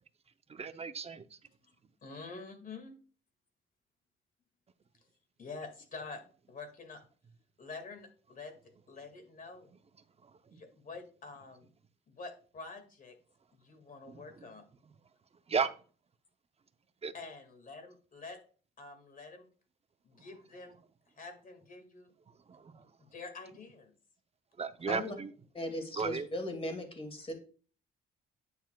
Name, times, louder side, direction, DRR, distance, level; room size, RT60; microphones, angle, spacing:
voice 1, 0.5-1.4 10.2-10.6 14.1-14.5 15.5-15.7 17.0-17.1 22.5-22.9 24.6-25.3 26.0-26.3, right 5 dB, 30° right, 11 dB, 0.7 m, -35 dB
voice 2, 2.0-2.9 5.4-6.2 6.5-7.0 7.6-8.5 8.9-9.7 10.5-11.7 12.1-13.2 13.6-14.6 17.1-18.4 18.8-19.5 20.0-20.8 21.2-22.1 23.0-23.9, left 3 dB, 45° left, 6 dB, 2.1 m, -47 dB
voice 3, 25.5-27.3, left 1 dB, 30° left, 5 dB, 2.3 m, -37 dB
9.5 x 6.9 x 2.3 m, 0.39 s
cardioid pair, 90°, 20 cm